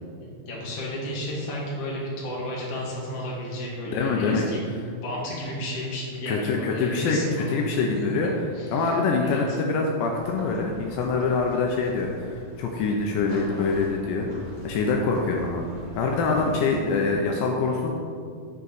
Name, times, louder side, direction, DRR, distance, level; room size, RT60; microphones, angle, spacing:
voice 1, 0.2-4.6 5.0-7.7 8.5-8.9 9.2-9.6, left 1 dB, 35° left, -5 dB, 1.3 m, -32 dB
voice 2, 3.9-4.5 6.3-7.2 7.5-8.3 8.7-15.7 15.9-17.9, left 4 dB, 80° left, 1 dB, 2.1 m, -25 dB
sound 1, 10.1-16.8, equal, 35° right, 2.7 m, -43 dB
8.3 x 7.3 x 4.0 m, 2.3 s
omnidirectional pair, 4.2 m